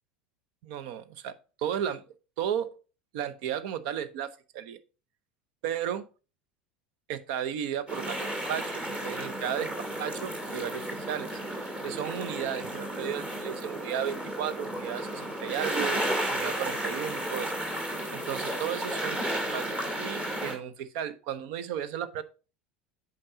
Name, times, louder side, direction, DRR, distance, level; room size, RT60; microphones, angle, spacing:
voice 1, 0.6-2.0 2.4-2.7 3.1-4.8 5.6-6.0 7.1-9.7 10.0-11.3 11.8-17.5 18.1-19.7 20.0-22.2, right 9 dB, 60° right, 0.8 m, -34 dB
sound 1, 7.9-20.5, right 1 dB, 20° right, 2.4 m, -33 dB
8.7 x 5.3 x 2.7 m
figure-of-eight pair, 75°, 6 cm